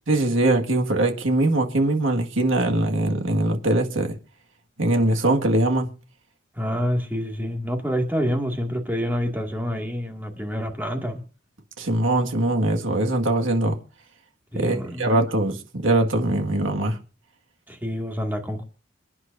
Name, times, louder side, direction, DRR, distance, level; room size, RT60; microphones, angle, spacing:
voice 1, 0.1-4.2 4.8-5.9 11.8-13.8 14.5-17.0, right 1 dB, 75° right, 1.9 m, -22 dB
voice 2, 6.6-11.2 14.5-15.1 17.7-18.6, equal, 10° right, 2.2 m, -27 dB
28.5 x 9.7 x 2.7 m
head